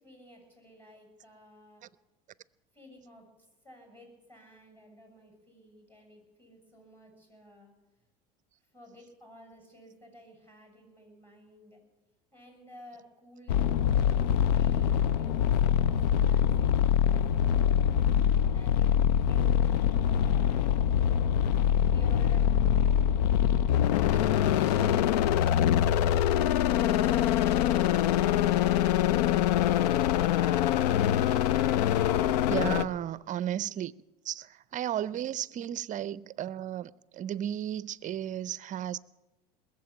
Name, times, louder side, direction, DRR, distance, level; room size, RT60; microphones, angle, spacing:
voice 1, 0.0-1.8 2.7-3.2 3.6-7.7 8.7-11.8 12.3-13.7 14.1-17.9 18.2-20.5 21.8-22.7 24.1-25.8, equal, 10° left, 6.8 m, -54 dB
sound 1, 13.5-32.8, left 9 dB, 85° left, 0.5 m, -24 dB
voice 2, 32.5-33.9 34.2-39.0, right 11 dB, 40° right, 0.5 m, -34 dB
20.5 x 7.5 x 8.7 m
supercardioid pair, 90°, 20 cm